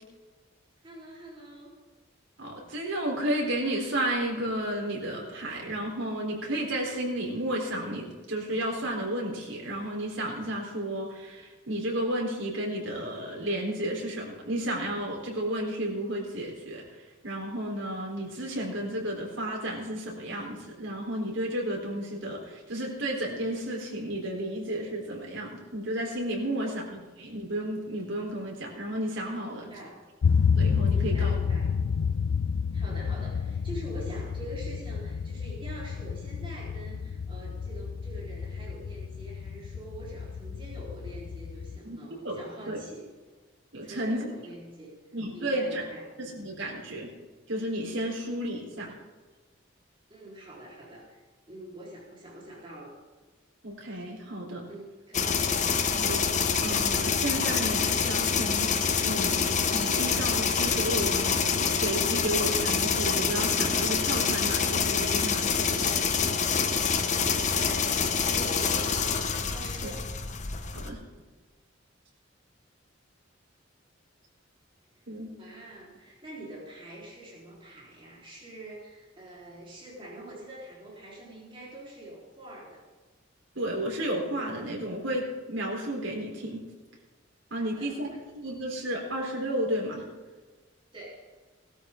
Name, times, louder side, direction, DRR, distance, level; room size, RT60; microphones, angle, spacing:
voice 1, 0.8-1.7 26.5-26.8 29.4-30.0 31.1-31.8 32.7-43.1 43.8-45.0 45.3-46.1 50.1-52.9 54.7-55.5 66.9-68.9 69.5-70.1 75.4-82.9 87.5-88.2 90.9-91.3, right 1 dB, 25° right, -5 dB, 4.0 m, -45 dB
voice 2, 2.4-16.8 17.2-29.7 30.5-31.4 41.8-42.0 42.2-42.4 42.7-42.8 43.7-44.3 45.1-45.9 46.2-47.1 47.5-48.9 53.6-54.6 55.9-56.2 56.6-65.9 70.7-71.0 75.1-75.3 83.6-86.6 87.5-88.1 88.4-90.0, right 1 dB, 75° right, -1 dB, 3.8 m, -32 dB
sound 1, 30.2-41.8, left 6 dB, 75° left, 0.4 m, -29 dB
sound 2, 55.1-70.9, left 6 dB, 40° left, 0.9 m, -26 dB
18.5 x 13.0 x 3.8 m, 1.3 s
head